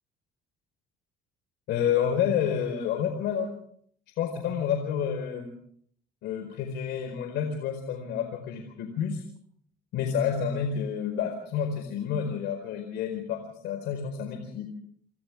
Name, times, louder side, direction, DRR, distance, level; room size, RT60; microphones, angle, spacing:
voice 1, 1.7-3.5 4.2-5.5 6.2-9.2 9.9-14.7, left 8 dB, 80° left, 6 dB, 4.7 m, -29 dB
29.0 x 27.0 x 3.6 m, 0.62 s
cardioid pair, 110°, 17 cm